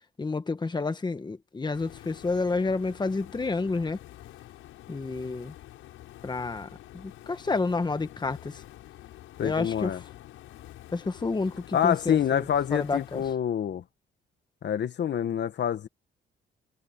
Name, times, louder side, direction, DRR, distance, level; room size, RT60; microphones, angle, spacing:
voice 1, 0.2-4.0 4.9-5.5 6.2-6.7 6.9-8.6 9.4-9.9 10.9-12.4 12.7-13.2, left 3 dB, 20° left, 1.5 m, -29 dB
sound 1, 1.7-13.3, left 14 dB, 90° left, 7.3 m, -48 dB
voice 2, 9.4-10.0 11.7-13.8 14.6-15.9, left 9 dB, 60° left, 1.9 m, -27 dB
cardioid pair, 90°, 20 cm